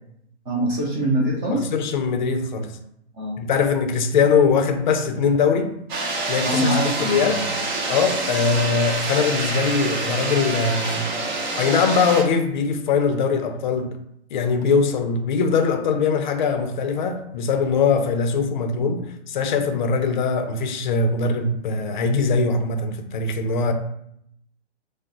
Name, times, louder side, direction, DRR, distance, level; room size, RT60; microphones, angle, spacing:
voice 1, 0.5-1.7 3.2-3.4 6.4-7.5, equal, 15° right, 0.5 m, -23 dB
voice 2, 1.5-2.8 3.4-5.7 6.3-7.4 7.9-11.1 11.6-14.0 14.3-19.0 19.3-23.7, left 5 dB, 40° left, 0.5 m, -21 dB
sound 1, 5.9-12.2, right 2 dB, 40° right, 0.9 m, -26 dB
4.9 x 2.1 x 2.9 m
hypercardioid pair, 145°, 35 cm